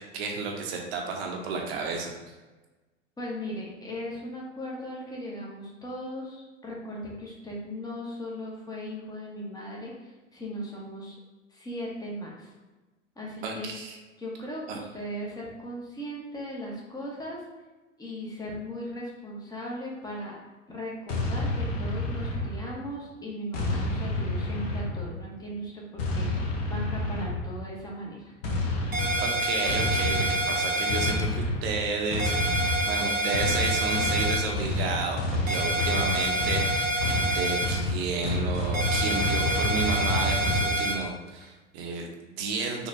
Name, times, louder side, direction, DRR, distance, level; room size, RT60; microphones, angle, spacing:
voice 1, 0.0-2.3 13.4-14.0 14.7-14.8 29.2-42.9, right 4 dB, 50° right, 1 dB, 0.8 m, -32 dB
voice 2, 3.2-11.2 11.5-12.5 13.2-13.7 14.2-17.4 18.0-20.3 20.7-28.3, equal, 10° left, -3 dB, 0.9 m, -38 dB
sound 1, 21.1-22.9 23.5-25.3 26.0-27.6 28.4-40.7, left 2 dB, 65° left, 1.0 m, -29 dB
sound 2, 28.9-31.1 32.2-34.4 35.5-37.7 38.7-40.9, right 1 dB, 85° right, 1.0 m, -27 dB
3.9 x 2.9 x 2.6 m, 1.2 s
hypercardioid pair, 95°, 39 cm